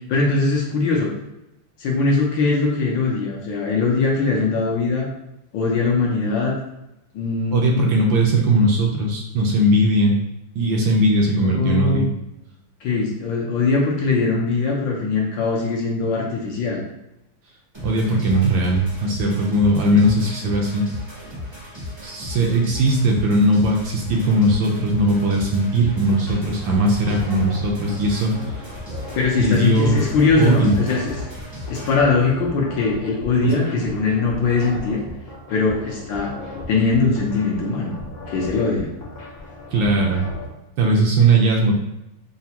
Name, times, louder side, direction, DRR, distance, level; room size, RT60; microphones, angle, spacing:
voice 1, 0.1-1.1 1.8-5.1 5.5-6.5 7.1-7.8 11.5-12.1 12.8-16.8 29.1-31.3 31.7-35.0 35.5-36.3 36.7-37.9 38.3-38.9, left 4 dB, 70° left, -2 dB, 1.3 m, -21 dB
voice 2, 7.5-10.1 10.6-12.1 17.8-20.9 22.0-28.3 29.4-30.0 30.4-30.8 33.4-33.8 39.7-40.3 40.8-41.8, right 1 dB, 75° right, 0 dB, 1.2 m, -19 dB
sound 1, 17.7-32.0, left 2 dB, 40° right, 0.4 m, -36 dB
sound 2, 25.8-40.5, left 2 dB, 45° left, 0.8 m, -37 dB
5.6 x 2.2 x 2.8 m, 0.89 s
omnidirectional pair, 2.4 m